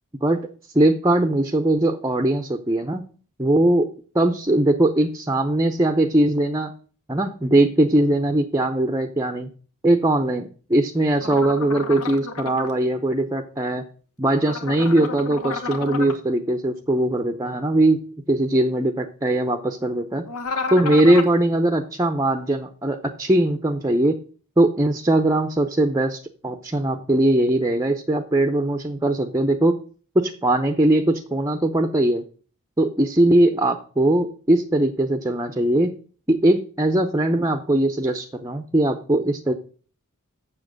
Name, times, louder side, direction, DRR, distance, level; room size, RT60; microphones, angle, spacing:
voice 1, 0.8-3.0 3.4-3.9 4.1-6.7 7.1-9.5 9.8-13.8 14.2-18.0 18.3-20.3 20.7-24.2 24.6-29.8 30.1-32.2 32.8-35.9 36.3-39.5, right 1 dB, 15° right, 7 dB, 0.6 m, -20 dB
sound 1, 11.2-12.7 14.4-16.2 20.3-21.4, left 3 dB, 85° left, 1.2 m, -31 dB
7.5 x 7.0 x 6.4 m, 0.42 s
head